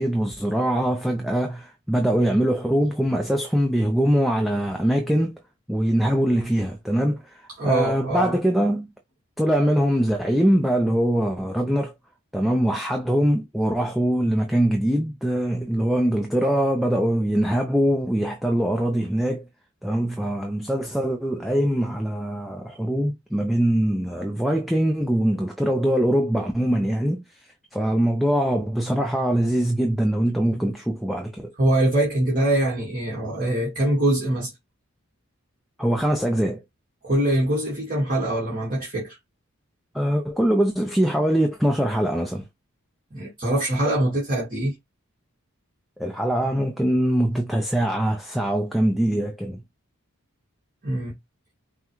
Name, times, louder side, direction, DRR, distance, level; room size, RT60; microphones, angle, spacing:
voice 1, 0.0-5.4 5.7-8.9 9.4-11.9 12.3-19.5 19.8-31.5 35.8-36.6 39.9-42.5 46.0-49.6, equal, ahead, 0.5 m, -23 dB
voice 2, 7.6-8.3 31.6-34.5 37.0-39.2 43.1-44.7 50.8-51.1, right 1 dB, 40° right, 1.5 m, -23 dB
5.7 x 2.2 x 3.0 m
head